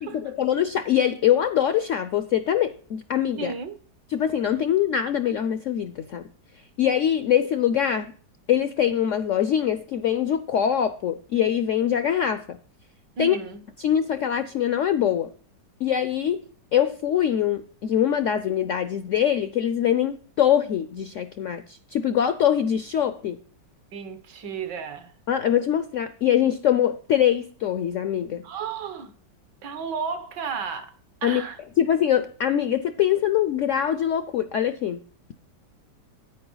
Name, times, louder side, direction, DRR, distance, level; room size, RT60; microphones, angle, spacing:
voice 1, 0.0-3.5 4.1-6.3 6.8-8.1 8.5-12.6 13.2-13.4 13.8-15.3 15.8-16.4 16.7-23.4 25.3-28.4 31.2-31.4 31.8-35.0, left 10 dB, 75° left, 0.7 m, -23 dB
voice 2, 3.4-3.8 13.2-13.6 23.9-25.1 28.4-29.1 29.6-31.6, right 5 dB, 75° right, 1.7 m, -33 dB
9.8 x 9.1 x 3.9 m
omnidirectional pair, 1.9 m